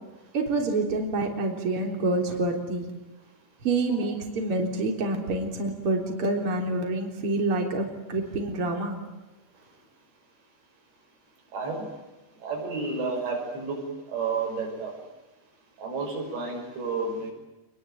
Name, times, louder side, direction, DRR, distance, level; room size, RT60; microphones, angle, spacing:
voice 1, 0.3-2.8 3.6-9.0, right 2 dB, 35° right, 2 dB, 4.1 m, -27 dB
voice 2, 11.5-11.9 12.4-14.9 15.8-17.3, right 4 dB, 85° right, 0 dB, 8.2 m, -31 dB
27.5 x 21.0 x 9.3 m, 1.1 s
omnidirectional pair, 4.9 m